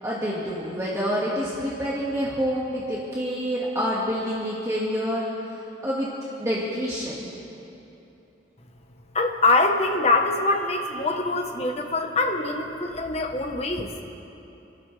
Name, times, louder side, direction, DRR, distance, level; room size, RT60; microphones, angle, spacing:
voice 1, 0.0-5.3 5.8-6.1 6.4-7.2, equal, 15° right, -7 dB, 1.8 m, -27 dB
voice 2, 9.1-14.0, left 2 dB, 35° left, 3 dB, 1.1 m, -24 dB
28.5 x 12.5 x 3.4 m, 2.9 s
head